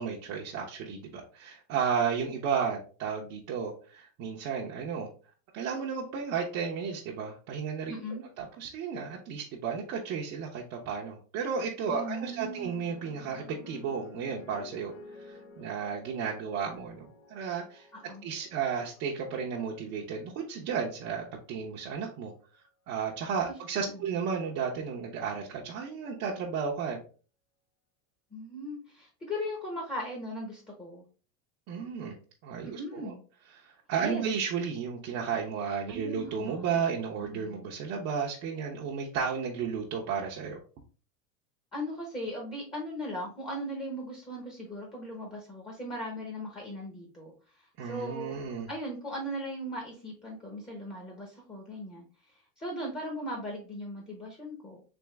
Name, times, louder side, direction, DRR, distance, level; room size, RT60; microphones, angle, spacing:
voice 1, 0.0-5.1 5.5-8.0 8.4-14.9 15.3-17.9 18.2-22.3 22.9-27.0 31.7-32.2 32.4-33.1 33.6-40.6 47.8-48.7, right 6 dB, 40° right, -3 dB, 0.7 m, -33 dB
voice 2, 7.9-8.2 11.9-12.8 17.9-18.2 23.5-23.6 23.8-24.1 28.3-31.0 32.6-33.2 34.0-34.2 35.9-36.7 37.2-37.7 41.7-48.3 48.7-52.0 52.6-54.8, equal, 10° left, -1 dB, 0.8 m, -38 dB
sound 1, 12.0-20.5 21.4-21.8, left 4 dB, 75° left, 1.2 m, -52 dB
3.5 x 3.0 x 3.1 m, 0.38 s
supercardioid pair, 150°, 41 cm